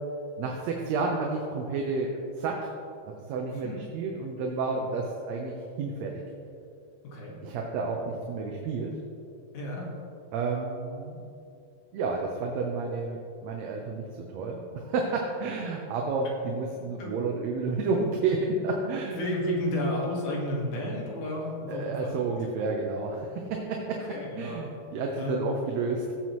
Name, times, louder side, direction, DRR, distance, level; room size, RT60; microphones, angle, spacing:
voice 1, 0.4-2.7 3.0-6.2 7.4-9.0 10.3-11.2 11.9-19.2 21.7-24.0 24.4-26.1, right 3 dB, 70° right, 0 dB, 1.9 m, -31 dB
voice 2, 3.5-3.8 4.7-4.9 7.0-7.4 9.5-9.9 17.0-17.2 19.2-22.3 24.0-24.6 25.2-25.4, left 1 dB, 85° left, -3 dB, 3.4 m, -32 dB
17.0 x 7.5 x 3.1 m, 2.5 s
omnidirectional pair, 3.5 m